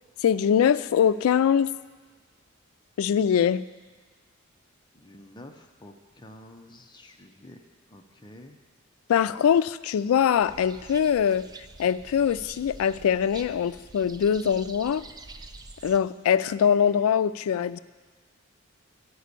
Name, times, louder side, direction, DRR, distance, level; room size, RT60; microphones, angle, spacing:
voice 1, 0.2-1.7 3.0-3.6 9.1-11.5 11.8-15.0 15.8-17.8, left 8 dB, 80° left, 16 dB, 0.3 m, -23 dB
voice 2, 4.9-7.6 7.9-8.6, left 1 dB, 20° left, 5 dB, 0.6 m, -48 dB
sound 1, 10.4-16.0, right 3 dB, 20° right, 0.4 m, -46 dB
10.0 x 5.1 x 8.2 m, 1.5 s
head